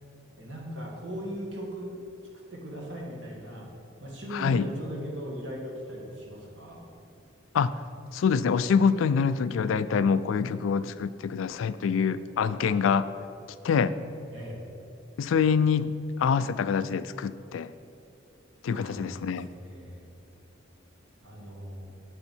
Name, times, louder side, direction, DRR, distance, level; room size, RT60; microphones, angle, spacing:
voice 1, 0.4-1.9 2.5-3.7 4.0-6.9 14.3-14.6 18.7-20.1 21.2-21.9, equal, 70° right, -2 dB, 1.9 m, -38 dB
voice 2, 4.3-4.7 7.5-7.7 8.1-13.1 13.6-14.0 15.2-15.9 16.2-17.7 18.6-19.5, left 6 dB, 90° left, 15 dB, 0.3 m, -25 dB
7.9 x 6.8 x 4.4 m, 2.7 s
head